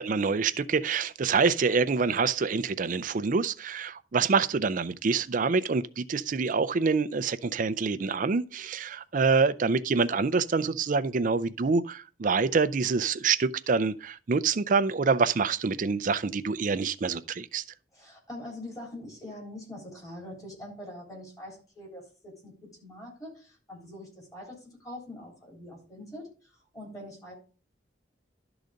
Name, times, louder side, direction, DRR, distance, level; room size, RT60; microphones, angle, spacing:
voice 1, 0.1-17.6, right 4 dB, 45° right, 0.4 m, -26 dB
voice 2, 17.9-26.3 26.7-27.3, left 1 dB, 20° left, 3.7 m, -43 dB
12.0 x 4.0 x 5.0 m
head